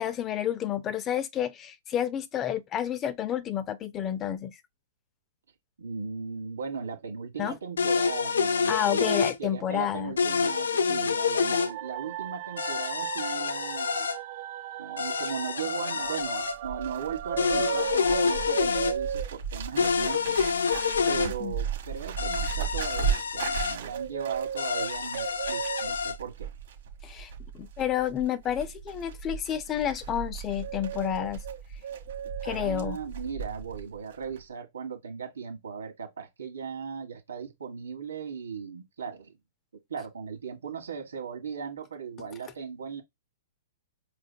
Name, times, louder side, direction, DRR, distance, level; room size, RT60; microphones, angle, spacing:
voice 1, 0.0-4.6 7.4-7.6 8.7-10.1 21.4-21.5 27.0-31.4 32.4-33.0, left 10 dB, 25° left, 0.5 m, -30 dB
voice 2, 5.8-14.1 14.8-20.4 21.1-26.5 32.4-39.3 39.9-43.0, right 6 dB, 90° right, 1.6 m, -37 dB
sound 1, 7.8-9.4 10.2-11.7 12.6-14.2 15.0-16.6 17.4-18.9 19.8-21.3 22.2-23.8 24.6-26.2, left 5 dB, 90° left, 0.4 m, -27 dB
sound 2, 11.4-18.5, right 14 dB, 50° right, 0.6 m, -39 dB
Bird, 16.0-33.9 34.1-34.4, right 7 dB, 70° right, 1.2 m, -35 dB
5.0 x 3.2 x 2.2 m
hypercardioid pair, 130°, 0 cm